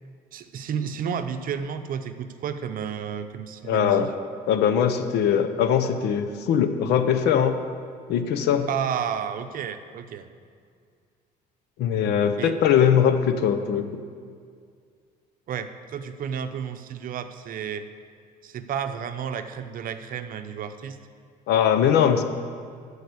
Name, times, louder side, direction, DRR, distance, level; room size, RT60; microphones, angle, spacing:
voice 1, 0.3-4.1 8.7-10.3 12.4-12.5 15.5-17.9 18.4-21.0, right 8 dB, 55° right, 9 dB, 0.7 m, -31 dB
voice 2, 3.6-4.1 4.5-7.5 8.1-8.7 11.8-14.0 21.5-22.2, left 8 dB, 80° left, 9 dB, 0.8 m, -21 dB
13.0 x 4.9 x 8.2 m, 2.2 s
cardioid pair, 110°, 17 cm